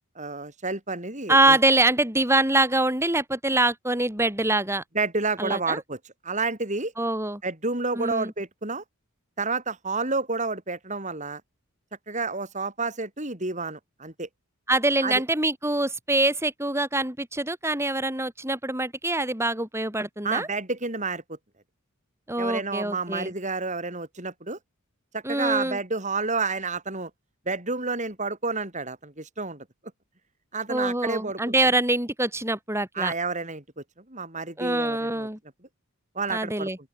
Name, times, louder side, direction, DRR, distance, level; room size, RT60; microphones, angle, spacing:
voice 1, 0.2-1.6 5.0-6.0 6.2-6.9 7.4-8.8 9.4-11.4 12.1-14.3 15.0-15.2 20.2-21.2 22.4-24.6 25.1-27.1 27.5-29.7 30.5-31.5 33.0-35.3 36.2-36.7, right 3 dB, 35° right, 5.4 m, -30 dB
voice 2, 1.3-4.8 5.4-5.8 7.0-7.4 7.9-8.3 14.7-20.5 22.3-23.3 25.2-25.8 30.7-33.1 34.6-35.4 36.3-36.8, right 2 dB, 10° right, 5.2 m, -24 dB
open air
head